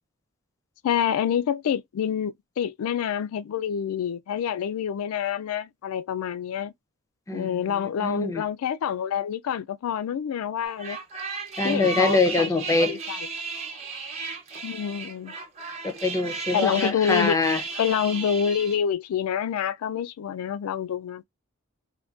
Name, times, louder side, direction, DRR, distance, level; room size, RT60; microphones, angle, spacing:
voice 1, 0.8-6.7 7.3-11.0 11.6-12.5 12.8-13.3 14.6-15.3 16.5-17.4 17.8-21.2, left 8 dB, 85° left, 0.3 m, -27 dB
voice 2, 8.0-8.4 11.6-13.0 15.8-17.6, left 2 dB, 15° left, 0.5 m, -24 dB
sound 1, 10.6-18.8, right 4 dB, 30° right, 0.8 m, -34 dB
3.6 x 2.2 x 2.4 m
head